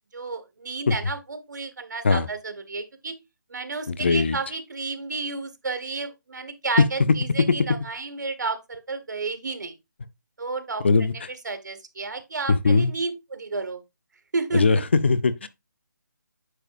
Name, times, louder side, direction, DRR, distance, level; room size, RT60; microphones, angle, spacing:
voice 1, 0.1-3.2 3.5-9.7 10.4-10.8 11.4-13.8 14.3-14.6, right 3 dB, 70° right, 1.6 m, -31 dB
voice 2, 3.9-4.4 6.8-6.9 7.4-7.6 10.8-11.3 12.5-12.9 14.5-15.5, left 4 dB, 35° left, 0.5 m, -20 dB
9.3 x 5.8 x 2.4 m
hypercardioid pair, 175°, 10 cm